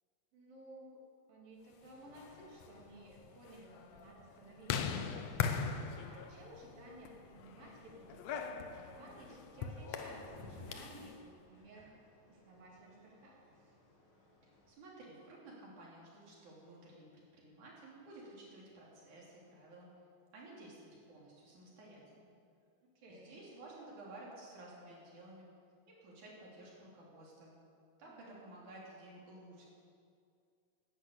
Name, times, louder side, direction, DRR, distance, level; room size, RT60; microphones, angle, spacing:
voice 1, 0.3-1.0 1.3-5.1 5.9-11.9 12.3-13.7 23.0-23.4 28.0-28.5, right 1 dB, 75° right, -3 dB, 4.5 m, -56 dB
sound 1, 2.0-11.1, left 6 dB, 75° left, 1.6 m, -41 dB
sound 2, 8.7-14.7, left 2 dB, 60° left, 4.2 m, -59 dB
voice 2, 14.4-17.1 17.3-19.9 20.3-22.3 23.1-25.5 25.9-27.6 28.0-29.7, right 2 dB, 60° right, -4 dB, 4.7 m, -54 dB
12.0 x 11.5 x 8.5 m, 2.3 s
omnidirectional pair, 4.1 m